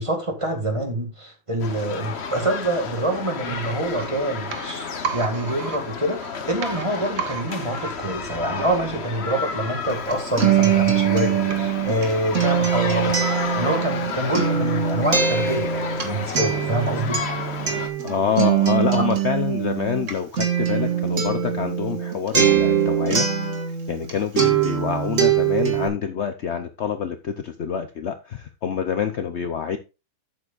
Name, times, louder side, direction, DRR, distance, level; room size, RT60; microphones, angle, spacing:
voice 1, 0.0-13.2 13.5-17.2 18.9-19.0, right 1 dB, 15° right, 3 dB, 1.9 m, -26 dB
sound 1, 1.6-17.9, left 6 dB, 45° left, 1.0 m, -32 dB
sound 2, 3.5-13.2 13.5-13.6, right 7 dB, 60° right, 1.6 m, -37 dB
Acoustic guitar, 9.9-24.1 24.4-25.9, right 8 dB, 40° right, 1.8 m, -22 dB
voice 2, 18.0-23.2 23.9-29.8, left 7 dB, 75° left, 8 dB, 0.6 m, -26 dB
11.0 x 8.6 x 2.5 m, 0.28 s
omnidirectional pair, 2.1 m